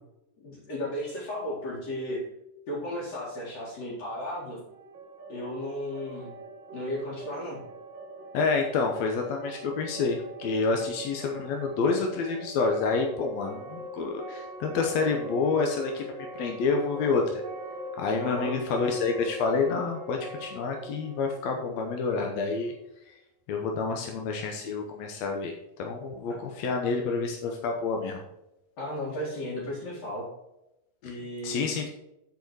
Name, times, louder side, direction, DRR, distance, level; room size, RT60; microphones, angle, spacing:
voice 1, 0.4-2.2 2.7-4.6 5.3-6.3 6.7-7.6 18.2-18.6 26.3-26.4 28.8-30.3 31.0-31.7, left 1 dB, 55° left, -8 dB, 3.3 m, -34 dB
sound 1, 4.7-22.5, right 1 dB, 65° right, 1.1 m, -42 dB
voice 2, 8.3-17.4 17.9-22.7 23.5-28.2 31.4-31.9, left 4 dB, 70° left, 2 dB, 1.7 m, -28 dB
9.3 x 4.8 x 4.7 m, 0.88 s
omnidirectional pair, 3.9 m